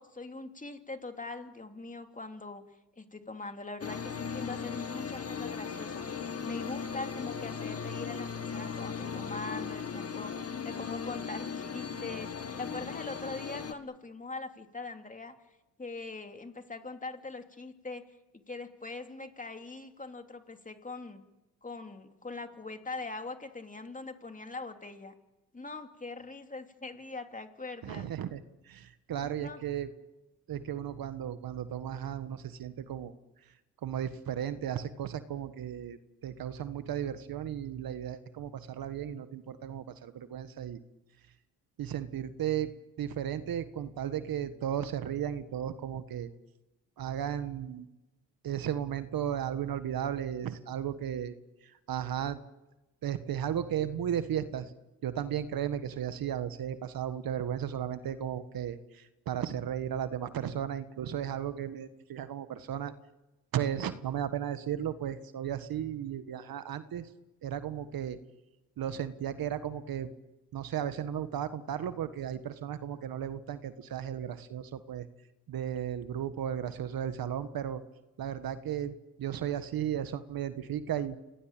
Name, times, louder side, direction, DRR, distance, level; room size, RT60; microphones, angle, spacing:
voice 1, 0.0-2.6 3.0-15.3 15.8-18.0 18.5-21.2 21.6-25.1 25.5-28.1 29.2-29.6, left 3 dB, 20° left, 6 dB, 2.9 m, -42 dB
sound 1, 3.8-13.7, left 6 dB, 35° left, 2.1 m, -37 dB
voice 2, 27.8-29.9 30.5-33.1 33.8-40.8 41.8-42.7 43.0-46.3 47.0-47.9 48.4-51.3 51.6-52.4 53.0-54.7 55.0-62.9 63.5-67.1 67.4-68.2 68.8-70.1 70.5-75.1 75.5-77.8 78.2-81.2, right 10 dB, 60° right, 12 dB, 1.5 m, -35 dB
27.5 x 18.5 x 9.0 m, 1.0 s
supercardioid pair, 80°, 40 cm